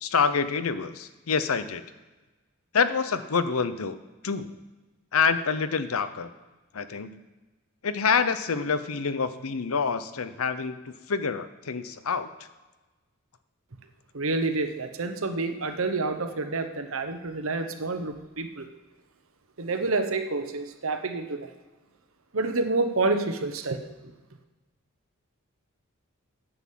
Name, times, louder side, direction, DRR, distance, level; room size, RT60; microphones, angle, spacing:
voice 1, 0.0-1.8 2.7-4.0 4.2-4.5 5.1-6.3 6.7-7.2 7.8-12.3, left 5 dB, 75° left, 12 dB, 0.7 m, -27 dB
voice 2, 14.1-18.7 19.6-21.5 22.3-23.8, right 3 dB, 65° right, 8 dB, 1.0 m, -28 dB
9.7 x 6.1 x 7.5 m, 1.2 s
head